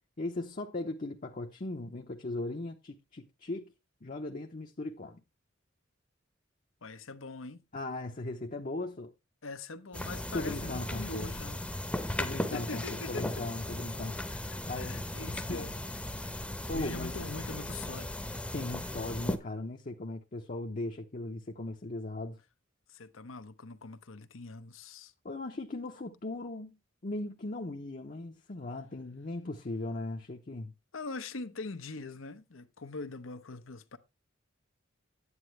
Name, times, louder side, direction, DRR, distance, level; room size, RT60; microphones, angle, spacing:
voice 1, 0.2-3.7 4.0-5.2 7.7-9.1 10.3-11.3 12.2-14.1 14.7-15.7 16.7-17.1 18.5-22.4 25.2-26.8 27.0-30.7, left 2 dB, 40° left, 0.8 m, -38 dB
voice 2, 6.8-7.6 9.4-11.6 12.5-13.3 14.3-15.8 16.7-18.2 22.9-25.1 30.9-34.0, left 3 dB, 85° left, 1.0 m, -42 dB
sound 1, 9.9-19.4, left 1 dB, 5° left, 0.8 m, -37 dB
9.8 x 8.5 x 3.2 m
head